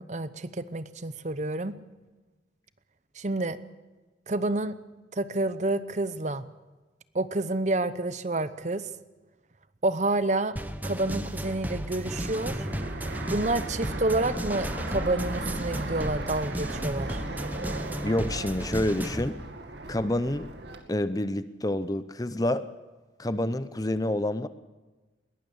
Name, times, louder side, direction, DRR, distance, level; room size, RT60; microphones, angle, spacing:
voice 1, 0.0-1.8 3.1-3.6 4.3-4.8 5.1-6.5 7.1-8.9 9.8-10.6 10.8-12.7 13.3-17.2, right 2 dB, 40° right, 14 dB, 0.8 m, -29 dB
sound 1, 10.6-19.3, right 1 dB, 10° right, 1.0 m, -34 dB
Fixed-wing aircraft airplane, 12.1-20.8, right 2 dB, 70° right, 2.3 m, -38 dB
voice 2, 18.0-19.4 19.9-20.5 20.9-22.7 23.2-24.5, left 1 dB, 20° left, 13 dB, 0.7 m, -28 dB
21.5 x 18.5 x 7.1 m, 1.2 s
head